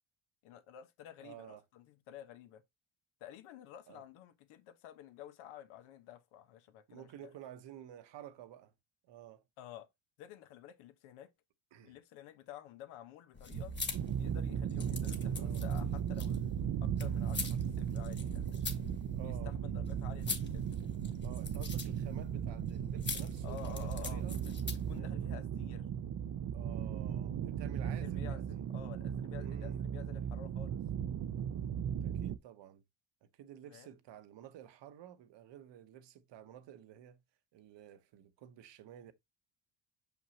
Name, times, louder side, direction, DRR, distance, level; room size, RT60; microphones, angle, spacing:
voice 1, 0.4-2.6 3.2-7.3 9.6-9.9 10.2-11.3 11.8-13.8 14.2-16.5 16.8-18.6 19.2-20.6 23.4-25.9 27.8-30.8 33.7-33.9, left 11 dB, 90° left, 1.3 m, -51 dB
voice 2, 1.2-1.6 3.9-4.0 6.9-8.7 9.0-9.4 11.7-12.0 15.4-15.6 19.2-19.5 21.2-24.4 24.8-25.1 26.5-28.7 29.3-29.8 32.0-32.8 33.2-37.2 37.5-39.1, right 11 dB, 60° right, 1.1 m, -52 dB
sound 1, 13.3-25.0, left 5 dB, 20° left, 1.4 m, -44 dB
sound 2, 13.5-32.4, right 9 dB, 40° right, 0.6 m, -37 dB
6.1 x 5.6 x 2.8 m
cardioid pair, 115°, 48 cm